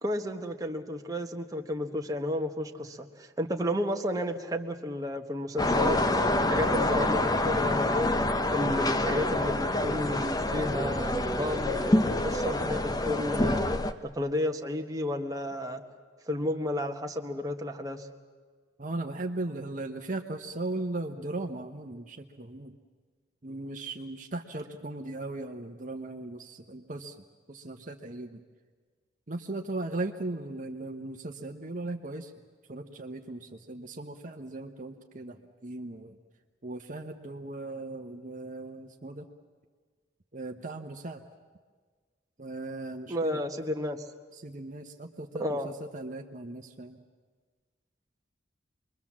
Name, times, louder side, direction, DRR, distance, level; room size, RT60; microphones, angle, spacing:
voice 1, 0.0-8.1 8.5-13.6 14.1-15.8 16.3-18.1 43.1-44.0 45.4-45.7, left 1 dB, 20° right, 3 dB, 1.3 m, -32 dB
sound 1, 5.6-13.9, left 1 dB, 20° left, 0.8 m, -27 dB
voice 2, 18.8-22.7 23.4-27.2 27.5-28.4 29.3-32.3 32.7-36.2 36.6-39.2 40.3-41.2 42.4-43.4 44.3-47.0, right 2 dB, 40° right, 4 dB, 1.0 m, -38 dB
26.5 x 22.0 x 7.4 m, 1.5 s
head